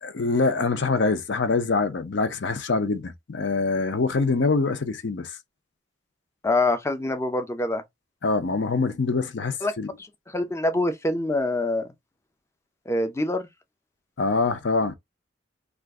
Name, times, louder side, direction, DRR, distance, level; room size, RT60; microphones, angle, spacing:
voice 1, 0.0-5.4 8.2-9.9 14.2-14.9, left 3 dB, 70° left, 0.6 m, -24 dB
voice 2, 6.4-7.8 9.6-9.7 10.0-11.9 12.9-13.5, left 2 dB, 15° left, 0.5 m, -25 dB
2.5 x 2.4 x 3.5 m
head